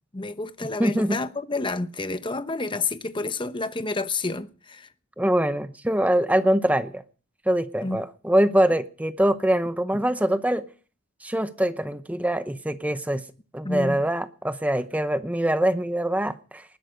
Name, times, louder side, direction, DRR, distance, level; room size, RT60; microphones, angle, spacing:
voice 1, 0.1-4.9 7.8-8.0 13.6-14.0, left 3 dB, 25° left, 0.8 m, -29 dB
voice 2, 0.8-1.2 5.2-7.0 7.5-10.6 11.2-13.2 13.5-16.6, right 1 dB, 5° right, 0.8 m, -23 dB
19.5 x 11.0 x 5.2 m
head